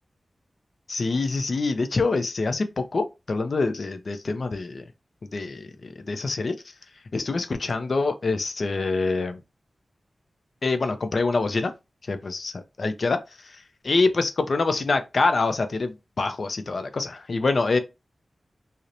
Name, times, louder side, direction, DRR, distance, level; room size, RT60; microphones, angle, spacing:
voice 1, 0.9-4.8 5.2-6.5 7.1-9.4 10.6-11.7 12.1-12.5 12.8-13.6 13.8-17.8, left 3 dB, 65° left, 0.4 m, -25 dB
2.8 x 2.0 x 2.5 m
cardioid pair, 55°, 0 cm